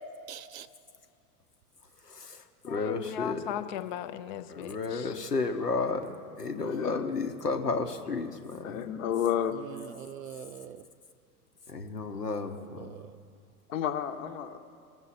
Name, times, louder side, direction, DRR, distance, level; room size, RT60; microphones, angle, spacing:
voice 1, 0.3-0.7 9.5-10.9 12.7-13.2, right 9 dB, 60° right, 14 dB, 0.6 m, -44 dB
voice 2, 2.0-3.5 4.5-8.8 11.7-13.0, left 4 dB, 90° left, 6 dB, 1.0 m, -33 dB
voice 3, 2.7-5.1, left 11 dB, 35° left, 9 dB, 0.4 m, -37 dB
voice 4, 6.6-7.0 8.6-9.5 13.7-14.6, left 9 dB, 60° left, 8 dB, 1.0 m, -31 dB
20.5 x 7.1 x 4.1 m, 2.3 s
figure-of-eight pair, 95°, 46 cm